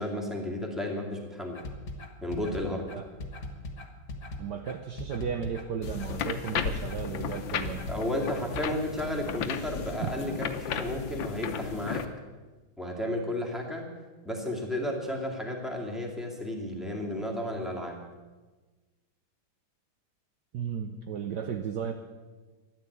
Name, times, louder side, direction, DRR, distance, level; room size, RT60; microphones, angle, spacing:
voice 1, 0.0-1.6 2.2-2.9 7.9-12.0 12.8-13.9 14.2-18.0, left 1 dB, ahead, 0 dB, 2.2 m, -33 dB
sound 1, 1.5-8.6, left 2 dB, 45° left, 1.9 m, -39 dB
voice 2, 4.4-7.9 10.0-10.4 20.5-21.9, right 7 dB, 60° right, 5 dB, 1.3 m, -34 dB
sound 2, 5.8-12.0, left 7 dB, 70° left, 1.6 m, -34 dB
13.5 x 10.5 x 8.0 m, 1.3 s
omnidirectional pair, 2.3 m